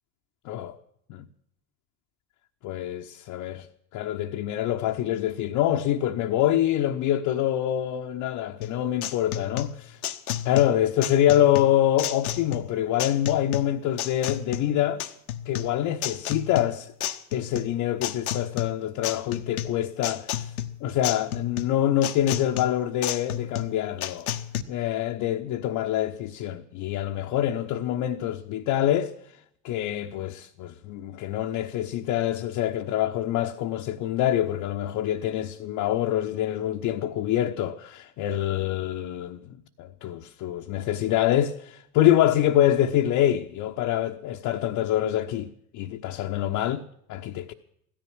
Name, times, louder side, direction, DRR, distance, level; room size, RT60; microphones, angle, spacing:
voice 1, 0.4-0.8 1.1-1.3 2.6-3.7 3.9-10.0 10.4-15.0 15.5-16.9 17.3-20.5 20.8-24.3 24.7-29.1 29.6-46.8 47.1-47.5, left 12 dB, 45° left, 1.0 m, -25 dB
sound 1, 8.6-24.6, left 11 dB, 75° left, 1.1 m, -32 dB
16.5 x 14.0 x 6.3 m
figure-of-eight pair, 70°, 43 cm